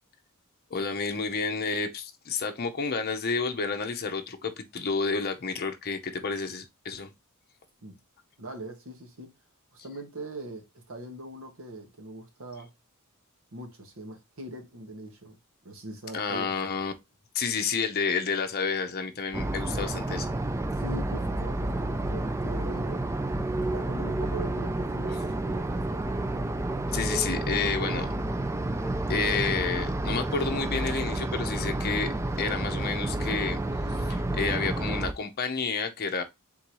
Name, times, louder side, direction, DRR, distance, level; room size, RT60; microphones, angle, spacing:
voice 1, 0.7-7.1 16.1-16.9 17.3-20.3 26.9-28.1 29.1-33.6 34.1-36.2, left 5 dB, 45° left, 0.6 m, -30 dB
voice 2, 8.4-9.3 9.7-12.7 13.5-15.4 15.6-16.6 20.8-23.1 23.7-26.1, right 1 dB, 65° right, 1.2 m, -41 dB
sound 1, 19.3-35.1, right 1 dB, 15° right, 0.4 m, -30 dB
3.8 x 2.7 x 4.5 m
head